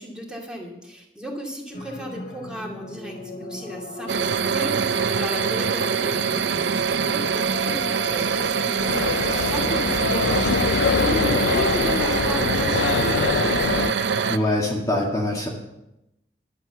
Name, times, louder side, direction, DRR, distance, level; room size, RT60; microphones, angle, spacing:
voice 1, 0.0-14.0, equal, 5° right, -1 dB, 2.5 m, -34 dB
sound 1, 1.7-14.6, left 2 dB, 60° left, 2.4 m, -37 dB
sound 2, 4.1-14.4, right 6 dB, 75° right, 0.5 m, -24 dB
sound 3, 8.9-13.9, left 6 dB, 85° left, 0.4 m, -24 dB
voice 2, 14.3-15.5, left 1 dB, 20° left, -3 dB, 2.0 m, -23 dB
11.5 x 7.9 x 8.0 m, 0.88 s
head